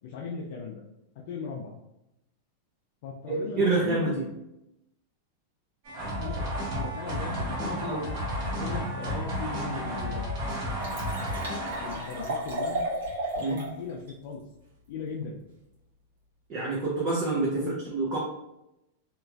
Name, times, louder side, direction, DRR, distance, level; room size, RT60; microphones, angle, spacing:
voice 1, 0.0-0.8 1.2-1.7 3.0-4.2 6.0-8.2 8.6-10.5 11.8-12.9 13.4-14.4 14.9-15.4 17.6-17.8, left 5 dB, 60° left, -2 dB, 0.4 m, -38 dB
voice 2, 3.3-4.2 7.8-8.0 11.3-11.4 13.4-13.6 16.5-17.6 17.9-18.2, right 3 dB, 35° right, -6 dB, 0.7 m, -27 dB
sound 1, 5.9-12.4, equal, 55° right, 1.1 m, -32 dB
Liquid, 9.6-9.7 10.2-10.3 10.5-13.7 14.1-14.2, right 1 dB, 85° right, 1.1 m, -34 dB
2.9 x 2.4 x 2.3 m, 0.89 s
supercardioid pair, 150°, 0 cm